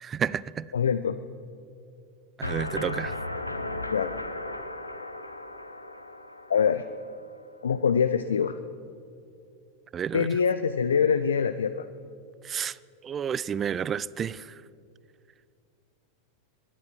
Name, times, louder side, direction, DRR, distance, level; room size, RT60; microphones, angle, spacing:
voice 1, 0.0-0.7 2.4-3.2 9.9-10.3 12.4-12.8 13.0-14.6, right 8 dB, 25° right, 22 dB, 0.3 m, -31 dB
voice 2, 0.7-1.2 3.9-4.1 6.5-6.8 7.6-8.6 10.1-11.9, left 7 dB, 70° left, 11 dB, 0.4 m, -24 dB
sound 1, 2.4-7.3, left 2 dB, 85° left, 0.8 m, -36 dB
24.5 x 10.5 x 5.3 m, 2.4 s
figure-of-eight pair, 90°, 0 cm